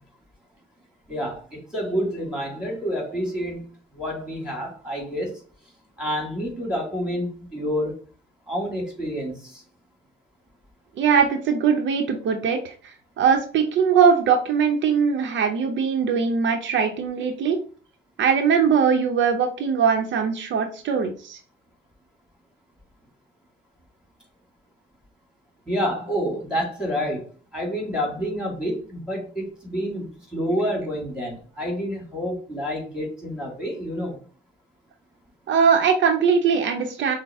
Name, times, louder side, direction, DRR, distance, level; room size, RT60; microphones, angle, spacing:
voice 1, 1.1-3.6 3.9-5.4 6.0-7.9 8.5-9.6 25.7-34.2, equal, 5° right, 0 dB, 2.3 m, -28 dB
voice 2, 11.0-17.6 18.2-21.4 35.5-37.1, right 6 dB, 70° right, 4 dB, 0.7 m, -21 dB
6.1 x 2.1 x 3.5 m, 0.40 s
cardioid pair, 90°, 20 cm